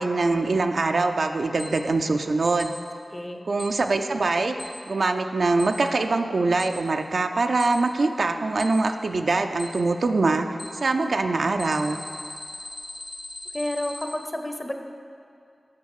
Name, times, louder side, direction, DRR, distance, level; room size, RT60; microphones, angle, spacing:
voice 1, 0.0-2.8 3.4-4.6 4.9-10.5 10.8-12.0, right 3 dB, 75° right, 6 dB, 0.4 m, -23 dB
Alarm, 1.6-1.7 2.6-2.7 3.6-3.7 4.6-4.7 5.6-5.7 6.6-6.7 7.6-7.7 8.6-8.7 9.6-9.7 10.6-10.7 11.6-14.0, left 2 dB, 75° left, 2.4 m, -38 dB
voice 2, 3.1-3.5 13.5-14.7, left 1 dB, 20° left, 5 dB, 0.7 m, -30 dB
8.2 x 5.2 x 6.5 m, 2.4 s
wide cardioid pair, 55°, 0 cm